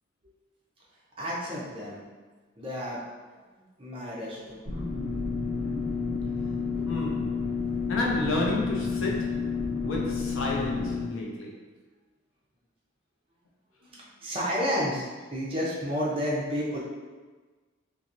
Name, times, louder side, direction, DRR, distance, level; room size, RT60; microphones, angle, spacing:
voice 1, 1.2-2.0 2.6-3.0 3.3-3.4 3.8-4.6 6.7-6.9 13.8-16.8, equal, 25° right, -6 dB, 0.6 m, -31 dB
sound 1, 4.7-11.0, left 5 dB, 10° right, 1.4 m, -30 dB
voice 2, 6.9-7.4 7.9-9.5 9.8-11.6, left 1 dB, 75° left, -2 dB, 0.5 m, -31 dB
2.9 x 2.6 x 2.5 m, 1.3 s
head